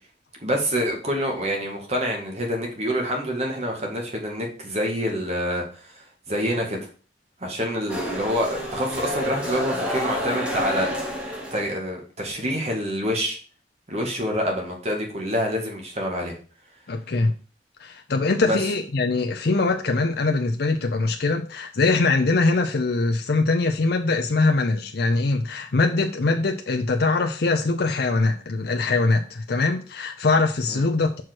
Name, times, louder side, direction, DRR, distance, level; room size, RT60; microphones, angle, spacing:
voice 1, 0.4-6.8 7.4-10.9 11.5-13.4 13.9-16.4 18.4-18.6 30.7-30.9, equal, 40° right, 2.0 m, -27 dB
sound 1, 7.9-11.7, equal, 5° right, 1.6 m, -29 dB
voice 2, 16.9-17.3 17.8-31.2, left 3 dB, 60° left, 0.6 m, -22 dB
5.9 x 4.8 x 6.1 m
head